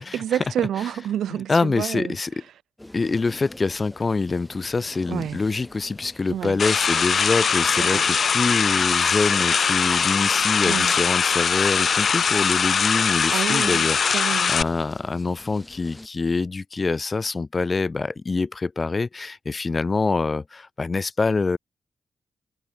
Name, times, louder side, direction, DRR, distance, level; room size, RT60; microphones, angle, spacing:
voice 1, 0.0-2.2 5.1-5.4 6.3-6.6 7.6-8.0 10.6-10.9 13.3-14.5, right 10 dB, 85° right, 0.5 m, -29 dB
voice 2, 1.5-2.3 2.9-14.1 14.5-21.6, left 4 dB, 40° left, 0.8 m, -25 dB
sound 1, 2.8-16.1, left 1 dB, 10° left, 1.7 m, -44 dB
sound 2, 6.6-14.6, left 6 dB, 60° left, 0.4 m, -21 dB
supercardioid pair, 50°, 0 cm